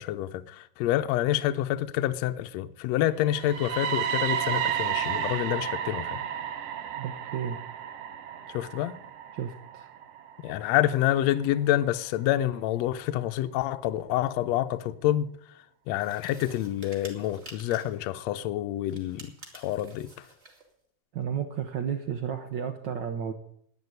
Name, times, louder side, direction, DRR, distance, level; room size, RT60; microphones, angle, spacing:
voice 1, 0.0-6.2 8.5-9.0 10.4-15.3 15.9-20.1, left 13 dB, 75° left, 1.8 m, -27 dB
sound 1, 3.3-11.2, right 9 dB, 65° right, 1.9 m, -32 dB
voice 2, 7.0-7.6 9.3-9.9 21.1-23.3, right 8 dB, 90° right, 1.0 m, -32 dB
sound 2, 16.0-18.0 18.9-20.7, right 2 dB, 20° right, 2.5 m, -49 dB
11.0 x 9.7 x 9.4 m
omnidirectional pair, 3.4 m